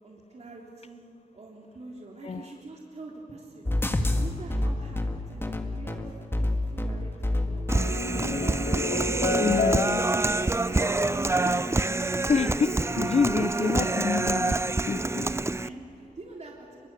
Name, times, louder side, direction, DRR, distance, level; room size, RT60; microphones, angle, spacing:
voice 1, 0.0-3.7 4.1-8.4 8.7-9.7 10.0-12.3 12.6-14.1 15.5-16.9, right 2 dB, 50° right, -1 dB, 3.3 m, -44 dB
sound 1, 3.6-9.7, left 1 dB, 15° left, 2.1 m, -29 dB
sound 2, 7.5-12.1, left 4 dB, 80° left, 2.7 m, -32 dB
Human voice, 7.7-15.7, right 2 dB, 20° right, 0.6 m, -26 dB
voice 2, 9.4-10.0 12.3-14.5 14.9-15.3, left 5 dB, 45° left, 17 dB, 0.7 m, -27 dB
26.0 x 23.5 x 8.2 m, 2.8 s
wide cardioid pair, 85°, 15 cm